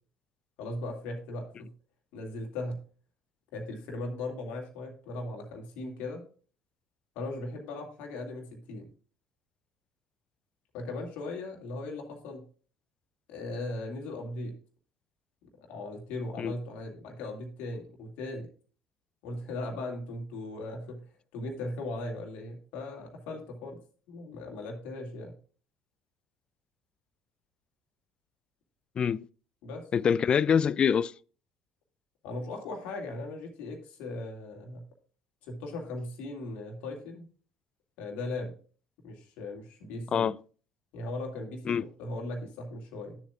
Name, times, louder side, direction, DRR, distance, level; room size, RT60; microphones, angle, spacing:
voice 1, 0.6-1.7 2.1-2.8 3.5-6.2 7.2-8.9 10.7-12.4 13.3-14.5 15.7-18.5 19.2-21.0 21.3-23.8 24.1-25.3 29.6-29.9 32.2-34.8 35.4-37.3 38.0-38.5 39.0-40.3 40.9-43.2, left 2 dB, 65° left, 2.2 m, -38 dB
voice 2, 29.0-29.3 29.9-31.1 40.1-40.4 41.7-41.8, left 7 dB, 35° left, 0.3 m, -25 dB
12.0 x 7.4 x 2.4 m
hypercardioid pair, 60°, 3 cm